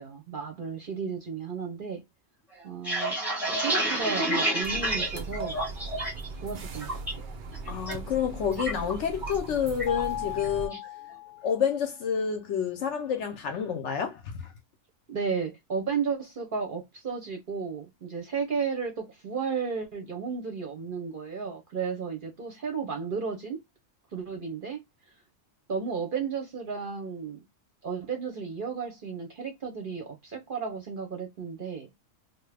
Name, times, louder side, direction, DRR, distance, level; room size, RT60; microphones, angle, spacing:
voice 1, 0.0-2.0 2.6-3.2 3.5-5.6 6.4-7.3 15.1-23.6 24.1-24.8 25.7-27.4 27.8-31.9, right 5 dB, 50° right, 0.7 m, -33 dB
sound 1, 2.6-6.3 6.6-7.1 7.5-7.9 8.2-9.5 9.8-10.0 10.4-10.8, right 1 dB, ahead, 0.8 m, -29 dB
sound 2, 4.6-10.7, right 3 dB, 80° right, 0.4 m, -39 dB
voice 2, 7.6-10.8 11.4-14.5, left 7 dB, 65° left, 0.8 m, -29 dB
Mallet percussion, 9.9-11.8, left 18 dB, 90° left, 1.0 m, -36 dB
2.9 x 2.1 x 3.2 m
omnidirectional pair, 1.5 m